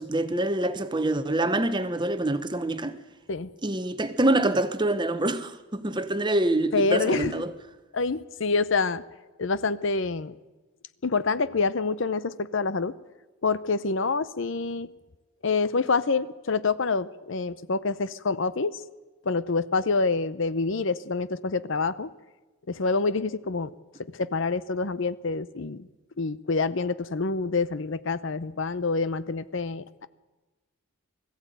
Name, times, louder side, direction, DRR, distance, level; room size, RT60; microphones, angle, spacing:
voice 1, 0.0-3.0 3.6-7.5, right 1 dB, 20° right, 0.9 m, -26 dB
voice 2, 6.7-7.4 7.9-9.0 9.4-10.4 11.0-13.0 13.4-14.9 15.4-18.8 19.2-22.1 22.7-23.7 24.1-25.9 26.2-30.1, left 4 dB, 60° left, 0.7 m, -27 dB
20.5 x 15.0 x 9.2 m
head